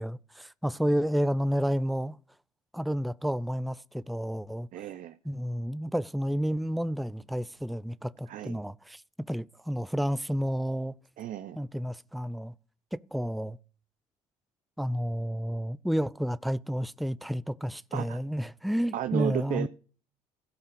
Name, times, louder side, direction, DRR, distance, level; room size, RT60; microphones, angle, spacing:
voice 1, 0.0-2.2 2.7-4.7 5.2-9.0 9.3-10.9 11.6-12.5 13.1-13.6 14.8-19.7, equal, ahead, 0.6 m, -30 dB
voice 2, 4.7-5.2 8.3-8.6 11.2-11.6 17.9-18.2 18.9-19.7, right 11 dB, 55° right, 0.8 m, -33 dB
16.5 x 5.6 x 6.7 m
hypercardioid pair, 50°, 17 cm